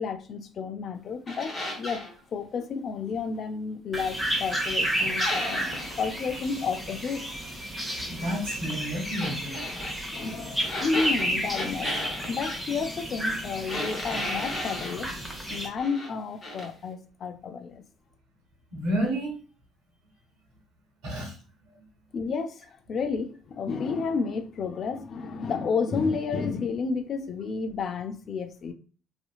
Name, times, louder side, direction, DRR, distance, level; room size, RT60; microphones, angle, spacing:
voice 1, 0.0-2.0 2.3-5.6 6.0-7.3 10.1-15.1 15.5-17.8 22.1-28.7, left 5 dB, 55° left, 0.4 m, -31 dB
sound 1, 1.3-2.1 5.2-6.0 9.0-10.0 10.6-12.6 13.7-15.0 15.5-16.1 16.4-16.7, left 1 dB, 40° left, 1.0 m, -34 dB
sound 2, 3.9-15.7, equal, 10° right, 1.0 m, -32 dB
voice 2, 8.1-9.6 18.7-19.4 21.0-21.4 21.7-21.8, equal, 70° right, 1.0 m, -30 dB
2.7 x 2.5 x 2.3 m
hypercardioid pair, 60°, 0 cm